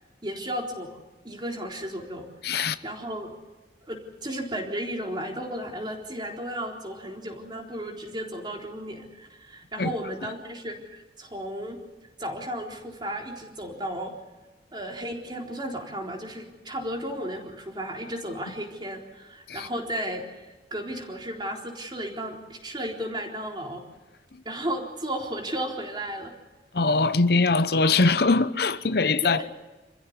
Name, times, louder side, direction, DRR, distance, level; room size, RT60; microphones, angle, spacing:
voice 1, 0.2-1.0 1.2-3.3 3.8-11.8 12.2-14.1 14.7-23.8 24.4-26.3 29.2-29.5, equal, 25° right, 4.0 m, -34 dB
voice 2, 2.4-2.8 9.8-9.9 19.5-19.7 26.7-29.5, left 3 dB, 60° left, 0.8 m, -22 dB
27.5 x 15.0 x 9.6 m
head